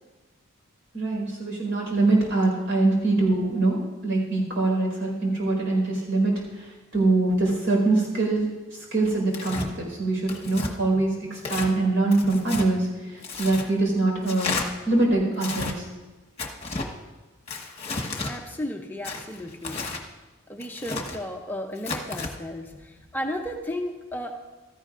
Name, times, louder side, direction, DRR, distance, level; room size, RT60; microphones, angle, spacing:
voice 1, 0.9-3.8 4.0-14.6 14.8-15.9, right 2 dB, 70° right, -2 dB, 4.7 m, -24 dB
Tearing, 9.3-9.7 10.3-10.7 11.4-11.7 12.1-12.7 13.2-13.7 14.2-14.7 15.3-15.7 16.4-16.9 17.5-18.3 19.0-20.0 20.6-21.2 21.8-22.3, left 3 dB, 30° left, 1.2 m, -32 dB
voice 2, 18.3-19.8 20.5-24.3, left 1 dB, 10° left, 2 dB, 0.6 m, -34 dB
16.5 x 13.5 x 2.5 m, 1.2 s
head